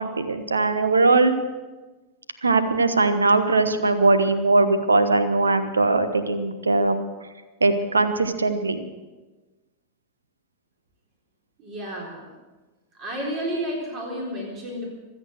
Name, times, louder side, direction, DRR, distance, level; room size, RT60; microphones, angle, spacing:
voice 1, 0.0-1.3 2.4-7.0 7.6-8.8, right 3 dB, 75° right, 10 dB, 1.2 m, -20 dB
voice 2, 11.6-12.3 13.0-15.0, equal, 35° right, -1 dB, 4.0 m, -31 dB
24.0 x 8.7 x 6.5 m, 1.2 s
figure-of-eight pair, 90°, 0 cm